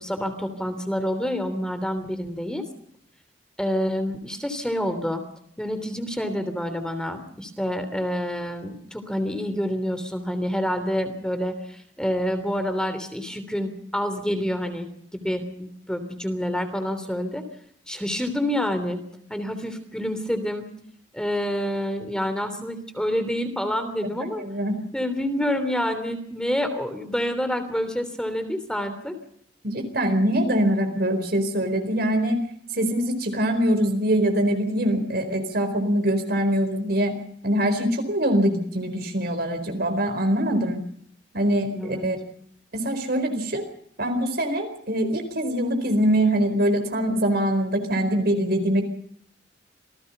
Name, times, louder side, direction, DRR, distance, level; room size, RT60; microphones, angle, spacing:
voice 1, 0.0-2.6 3.6-5.2 5.6-14.9 15.1-17.4 17.9-19.0 19.3-20.7 21.1-24.4 24.9-29.2 41.7-42.0, equal, 5° left, 9 dB, 3.2 m, -28 dB
voice 2, 24.4-24.8 29.6-32.4 32.7-40.8 41.3-42.2 42.7-43.6 44.0-48.8, right 1 dB, 60° right, 6 dB, 4.4 m, -23 dB
27.5 x 18.5 x 5.5 m, 0.66 s
head